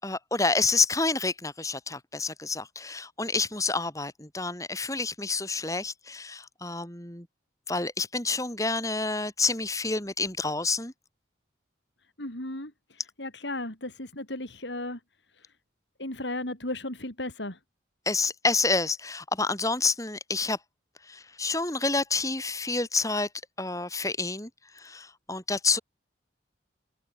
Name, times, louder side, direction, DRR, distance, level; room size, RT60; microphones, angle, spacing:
voice 1, 0.0-7.3 7.7-10.9 18.1-20.6 21.1-23.3 23.6-24.5 24.8-25.8, left 3 dB, 15° left, 4.5 m, -28 dB
voice 2, 12.2-15.0 16.0-17.6, left 1 dB, 75° left, 7.3 m, -35 dB
open air
head